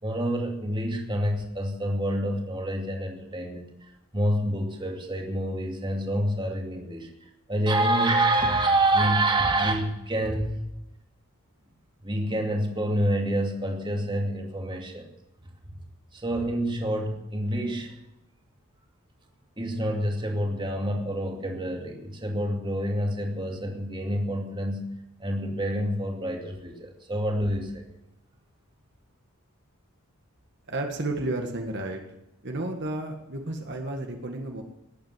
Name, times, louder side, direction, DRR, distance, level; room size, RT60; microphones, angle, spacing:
voice 1, 0.0-10.7 12.0-15.1 16.1-18.0 19.6-27.8, right 1 dB, 20° right, 2 dB, 2.4 m, -27 dB
voice 2, 30.7-32.0 32.4-34.6, right 2 dB, 50° right, 3 dB, 1.8 m, -32 dB
19.5 x 8.7 x 8.1 m, 0.89 s
head